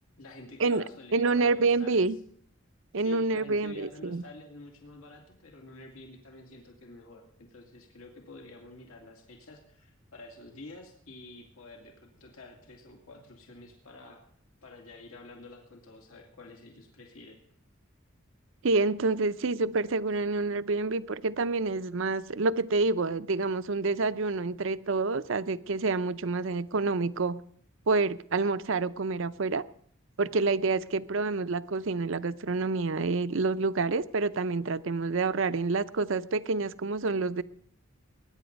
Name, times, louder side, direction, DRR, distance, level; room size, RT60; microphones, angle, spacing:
voice 1, 0.2-2.1 3.0-14.2 14.6-17.4, left 2 dB, 85° left, 1 dB, 2.3 m, -49 dB
voice 2, 1.1-2.2 2.9-4.2 18.6-27.4 27.9-29.6 30.2-37.4, right 3 dB, 65° right, 14 dB, 0.6 m, -28 dB
21.0 x 10.0 x 5.3 m, 0.63 s
head